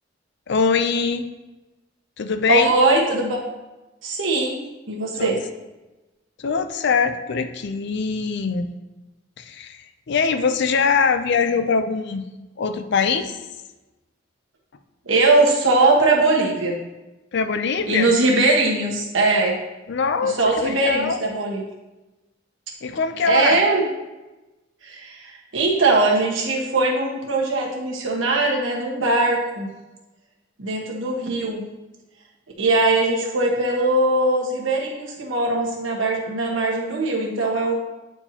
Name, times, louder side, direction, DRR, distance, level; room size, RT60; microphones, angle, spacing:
voice 1, 0.5-1.3 2.2-2.7 5.1-5.3 6.4-8.7 9.4-12.2 12.6-13.4 17.3-18.1 19.9-21.2 22.8-23.6, left 5 dB, 65° left, 9 dB, 0.5 m, -22 dB
voice 2, 2.5-3.4 4.0-4.6 4.9-5.4 15.0-16.7 17.9-19.6 20.2-21.6 23.3-23.9 24.8-29.7 30.6-31.6 32.6-37.7, right 2 dB, 85° right, -2 dB, 1.4 m, -20 dB
8.8 x 4.5 x 2.9 m, 1.1 s
head